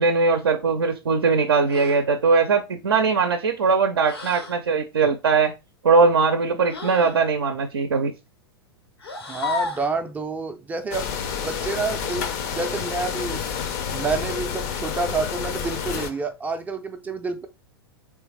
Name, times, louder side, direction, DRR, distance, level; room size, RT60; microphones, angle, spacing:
voice 1, 0.0-5.5 5.8-8.1, right 4 dB, 70° right, 0.5 m, -20 dB
sound 1, 1.7-2.1 4.0-4.6 6.7-7.2 9.0-9.9 11.6-11.8 13.9-14.4 15.8-16.3, left 5 dB, 75° left, 1.0 m, -33 dB
voice 2, 9.3-13.4 13.9-17.5, right 4 dB, 10° right, 0.4 m, -29 dB
sound 2, 10.9-16.1, left 7 dB, 45° left, 0.6 m, -29 dB
3.4 x 3.1 x 3.1 m
figure-of-eight pair, 95°, 13 cm